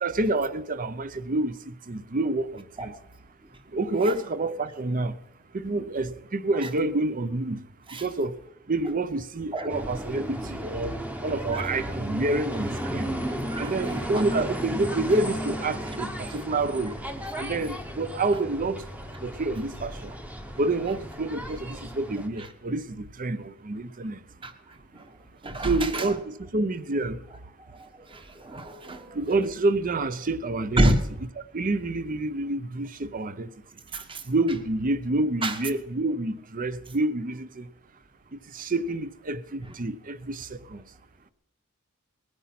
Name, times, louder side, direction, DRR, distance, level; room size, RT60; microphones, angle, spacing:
voice 1, 0.0-2.9 3.7-5.2 5.5-7.6 7.9-8.4 8.7-13.1 13.6-17.0 17.4-18.8 19.2-20.1 20.6-24.2 25.6-27.2 29.1-30.8 31.5-33.5 34.3-37.7 38.3-40.8, right 2 dB, 40° right, 0.7 m, -28 dB
sound 1, 9.7-22.3, equal, 5° right, 0.9 m, -34 dB
voice 2, 13.3-14.2 24.4-24.5 24.9-25.0 25.4-26.0 27.8-29.2 30.8-31.0 33.9-34.2 35.4-35.5, right 1 dB, 25° right, 1.2 m, -28 dB
19.5 x 9.8 x 5.9 m
head